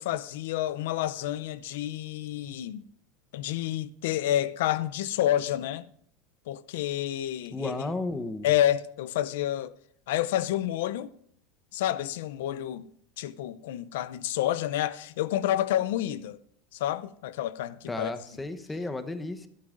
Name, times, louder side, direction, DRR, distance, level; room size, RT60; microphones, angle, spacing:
voice 1, 0.0-2.8 3.3-5.9 6.5-7.8 8.4-9.7 10.1-11.1 11.7-12.9 13.2-16.4 16.7-18.1, left 12 dB, 85° left, 0.5 m, -29 dB
voice 2, 7.5-8.5 17.9-19.5, left 2 dB, 10° left, 0.9 m, -33 dB
23.5 x 8.6 x 2.6 m
supercardioid pair, 125°, 0 cm